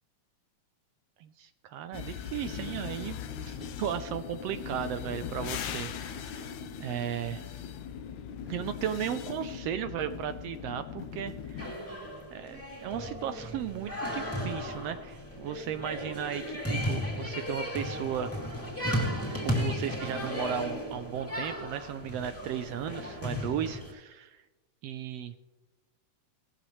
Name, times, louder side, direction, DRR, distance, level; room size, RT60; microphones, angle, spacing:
voice 1, 1.2-6.5 6.8-7.5 8.5-11.6 12.3-18.3 19.4-24.4 24.8-25.3, right 9 dB, 75° right, 10 dB, 1.5 m, -35 dB
sound 1, 1.9-11.7, left 8 dB, 80° left, 2.2 m, -39 dB
sound 2, 11.6-23.9, equal, 5° left, 2.5 m, -35 dB
17.5 x 13.0 x 3.2 m, 1.1 s
omnidirectional pair, 3.3 m